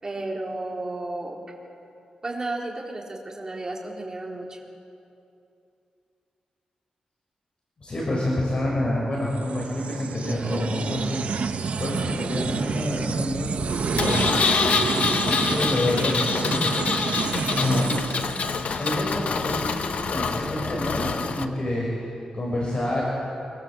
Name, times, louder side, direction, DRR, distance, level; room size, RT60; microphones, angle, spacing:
voice 1, 0.0-1.4 2.2-4.6, right 2 dB, 25° right, -2 dB, 4.2 m, -33 dB
voice 2, 7.8-11.2 11.4-14.3 15.1-16.6 17.4-17.9 18.8-22.0 22.3-23.0, left 1 dB, 40° left, -4 dB, 6.1 m, -28 dB
sound 1, 9.3-19.0, right 5 dB, 65° right, 1.2 m, -29 dB
Engine, 14.0-21.4, left 5 dB, 65° left, 1.1 m, -26 dB
25.0 x 25.0 x 7.9 m, 2.7 s
wide cardioid pair, 140°, 2 cm